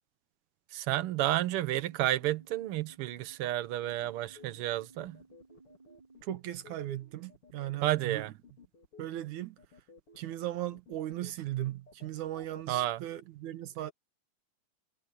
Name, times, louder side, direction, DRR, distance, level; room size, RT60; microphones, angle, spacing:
voice 1, 0.7-5.2 7.8-8.3 12.7-13.0, right 14 dB, 65° right, 1.5 m, -31 dB
sound 1, 1.2-6.2, right 3 dB, 10° right, 6.6 m, -59 dB
sound 2, 3.9-12.9, left 2 dB, 50° left, 4.6 m, -56 dB
voice 2, 6.2-8.2 9.0-9.6 10.2-13.9, right 13 dB, 85° right, 2.6 m, -37 dB
omnidirectional pair, 3.4 m